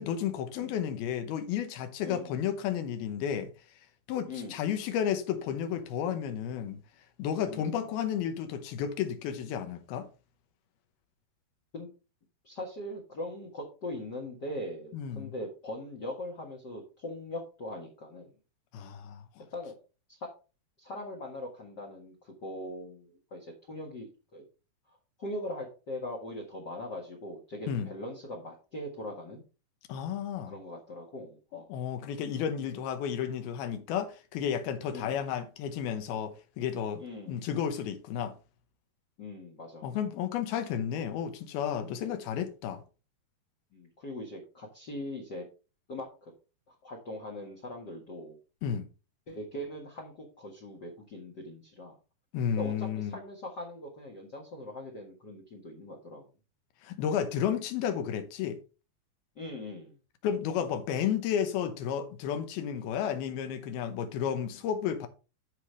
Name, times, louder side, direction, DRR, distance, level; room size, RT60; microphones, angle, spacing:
voice 1, 0.0-3.5 4.1-6.8 7.2-10.1 14.9-15.3 18.7-19.4 27.7-27.9 29.9-30.5 31.5-38.4 39.8-42.8 48.6-48.9 52.3-53.2 56.8-58.6 60.2-65.1, left 8 dB, 80° left, 2.9 m, -32 dB
voice 2, 2.0-2.3 4.3-4.6 7.5-7.9 11.7-11.9 12.4-18.3 19.5-19.8 20.2-20.3 20.8-24.4 25.2-29.4 30.5-31.7 34.9-35.2 37.0-37.5 39.2-39.9 42.0-42.2 43.7-45.4 45.9-46.3 46.7-48.4 49.3-52.0 52.6-56.3 59.3-60.0 62.7-62.9, left 1 dB, 55° left, 1.1 m, -41 dB
13.5 x 4.9 x 3.3 m
omnidirectional pair, 4.4 m